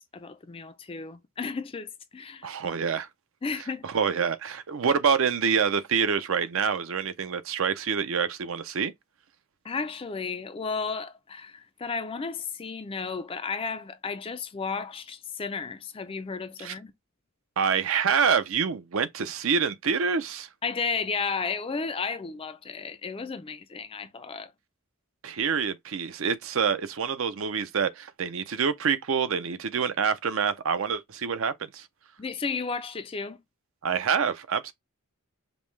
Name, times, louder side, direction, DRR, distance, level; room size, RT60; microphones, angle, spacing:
voice 1, 0.1-2.5 3.4-3.9 9.6-16.9 20.6-24.5 32.2-33.4, left 5 dB, 25° left, 0.4 m, -33 dB
voice 2, 2.4-3.1 3.8-8.9 16.6-16.7 17.6-20.5 25.2-31.9 33.8-34.7, right 6 dB, 60° right, 0.5 m, -26 dB
5.2 x 2.1 x 3.1 m
head